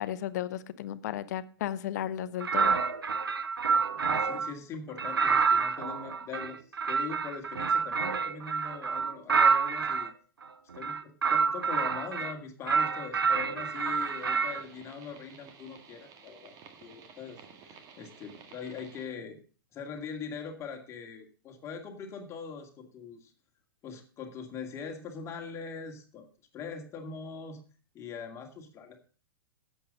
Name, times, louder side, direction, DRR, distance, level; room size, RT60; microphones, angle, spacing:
voice 1, 0.0-2.8, left 11 dB, 45° left, 15 dB, 0.8 m, -34 dB
sound 1, 2.4-4.5 5.0-10.1 10.7-12.3 12.7-14.6, right 5 dB, 70° right, 0.9 m, -28 dB
voice 2, 3.9-10.1 10.7-19.4 19.7-23.3 23.8-26.3 26.5-27.6 27.9-29.0, left 5 dB, 20° left, 4 dB, 2.2 m, -42 dB
sound 2, 13.7-19.1, right 6 dB, 30° right, 1.7 m, -53 dB
11.5 x 8.1 x 5.2 m, 0.40 s
figure-of-eight pair, 105°, 12 cm